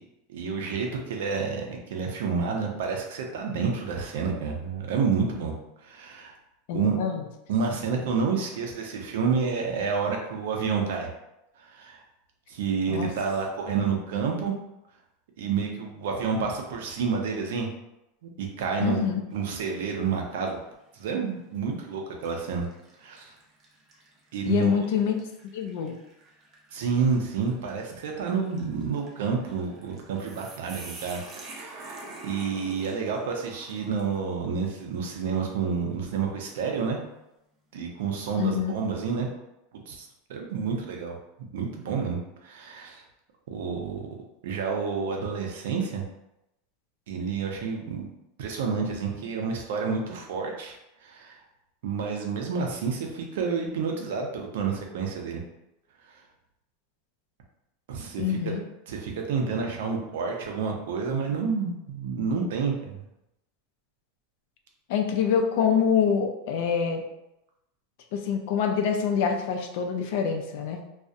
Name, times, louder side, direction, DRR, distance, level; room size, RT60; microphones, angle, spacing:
voice 1, 0.3-5.5 5.8-6.3 6.7-7.0 7.5-11.1 11.6-12.0 12.5-14.5 15.4-17.7 18.2-20.6 20.9-22.7 23.0-23.3 24.3-24.7 26.7-32.0 32.2-37.0 37.7-39.3 39.9-41.2 41.5-43.0 43.5-44.1 44.4-46.0 47.1-48.1 48.4-50.8 51.0-51.4 51.8-55.4 57.9-58.5 58.9-63.1, right 5 dB, 75° right, 1 dB, 0.5 m, -29 dB
voice 2, 6.7-7.2 12.9-13.1 18.8-19.2 24.4-25.2 25.5-26.0 38.4-38.7 58.2-58.6 64.9-67.0 68.1-70.8, left 7 dB, 55° left, 4 dB, 0.3 m, -25 dB
sound 1, 19.3-19.8 20.3-20.4 21.4-21.6 22.2-34.3, right 2 dB, 25° right, 0.4 m, -47 dB
2.3 x 2.0 x 2.6 m, 0.87 s
supercardioid pair, 170°, 0 cm